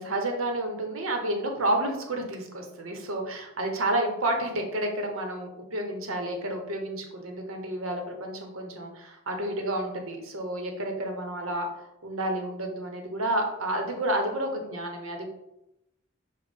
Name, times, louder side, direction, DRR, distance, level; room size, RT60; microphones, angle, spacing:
voice 1, 0.0-11.7 12.0-15.3, right 1 dB, 75° right, 3 dB, 1.1 m, -30 dB
7.3 x 2.5 x 5.3 m, 0.85 s
head